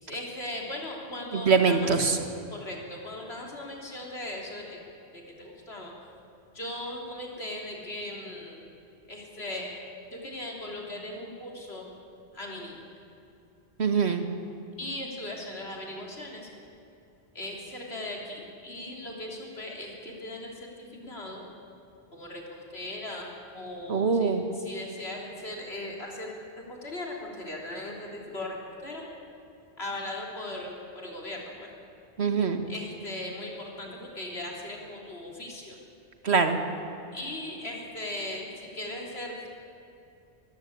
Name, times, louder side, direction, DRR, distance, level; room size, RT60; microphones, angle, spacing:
voice 1, 0.0-2.1 2.5-4.8 5.1-6.0 6.5-8.6 9.1-9.8 10.1-11.9 12.3-12.8 14.8-16.5 17.3-21.5 22.1-26.4 26.7-29.0 29.8-31.7 32.7-35.8 37.1-39.5, left 1 dB, 75° left, -1 dB, 3.8 m, -38 dB
voice 2, 1.5-2.2 13.8-14.3 23.9-24.4 32.2-32.6 36.2-36.6, right 5 dB, 80° right, 7 dB, 1.8 m, -23 dB
22.5 x 15.0 x 8.7 m, 2.8 s
omnidirectional pair, 1.1 m